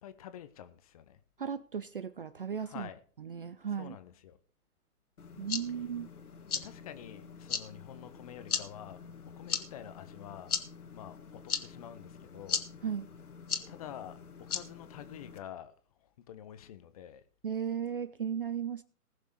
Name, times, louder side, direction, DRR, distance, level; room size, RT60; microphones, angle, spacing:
voice 1, 0.0-1.2 2.6-3.0 3.8-4.4 6.5-9.0 9.4-10.6 10.9-12.7 13.7-17.2, left 10 dB, 25° left, 0.8 m, -48 dB
voice 2, 1.4-2.9 3.2-4.0 5.4-6.1 12.8-13.1 17.4-18.8, right 8 dB, 40° right, 0.5 m, -36 dB
sound 1, 5.2-15.4, left 6 dB, 70° left, 1.8 m, -39 dB
20.0 x 6.7 x 4.7 m
figure-of-eight pair, 140°, 46 cm